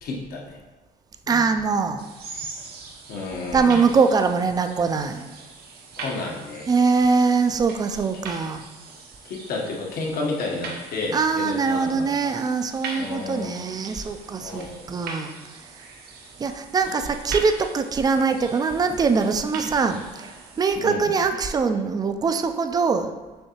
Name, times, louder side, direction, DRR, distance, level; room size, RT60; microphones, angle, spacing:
voice 1, 0.0-0.6 1.3-1.5 3.1-3.8 6.0-6.7 9.2-12.3 12.9-13.7 14.4-14.8 20.8-21.1, left 3 dB, 65° left, -1 dB, 1.0 m, -31 dB
voice 2, 1.3-2.0 3.5-5.3 6.7-8.6 11.1-15.3 16.4-20.3 20.6-23.2, right 5 dB, 25° right, 8 dB, 0.3 m, -22 dB
sound 1, 2.0-20.7, right 3 dB, 65° right, 0.8 m, -41 dB
6.5 x 2.7 x 2.9 m, 1.2 s
cardioid pair, 110°, 17 cm